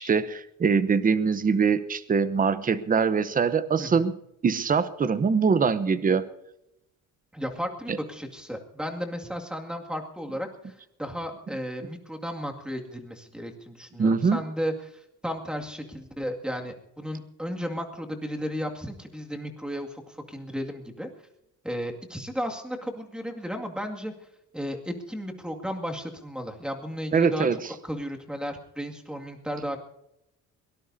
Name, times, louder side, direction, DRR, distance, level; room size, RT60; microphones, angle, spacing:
voice 1, 0.0-4.1 4.4-6.2 7.9-8.0 14.0-14.4 27.1-27.6, right 5 dB, 25° right, 14 dB, 0.9 m, -23 dB
voice 2, 7.3-10.7 11.0-21.1 21.6-24.1 24.5-27.5 27.8-29.8, equal, 5° right, 2 dB, 2.2 m, -34 dB
22.5 x 18.5 x 2.8 m, 0.84 s
cardioid pair, 130°, 31 cm